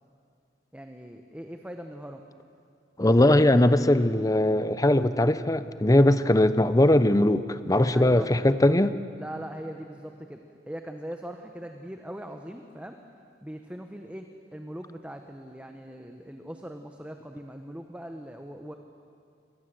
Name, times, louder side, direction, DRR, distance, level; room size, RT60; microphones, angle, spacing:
voice 1, 0.7-2.2 7.9-8.3 9.2-13.0 13.4-18.7, equal, 10° right, 5 dB, 1.1 m, -40 dB
voice 2, 3.0-9.0, left 1 dB, 20° left, 13 dB, 0.8 m, -20 dB
28.5 x 24.0 x 7.8 m, 2.4 s
head